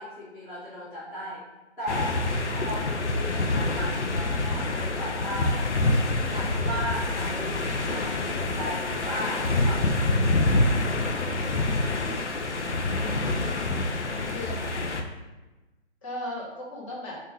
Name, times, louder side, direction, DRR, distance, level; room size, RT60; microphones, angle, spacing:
voice 1, 0.0-1.4 1.8-2.3 2.5-5.6 6.2-10.7, equal, ahead, -20 dB, 0.6 m, -36 dB
sound 1, 1.9-15.0, left 2 dB, 90° left, 0.9 m, -26 dB
voice 2, 13.0-13.7 14.1-14.9 16.0-17.2, left 1 dB, 30° left, -4 dB, 1.7 m, -38 dB
6.7 x 2.8 x 5.2 m, 1.1 s
hypercardioid pair, 160°, 34 cm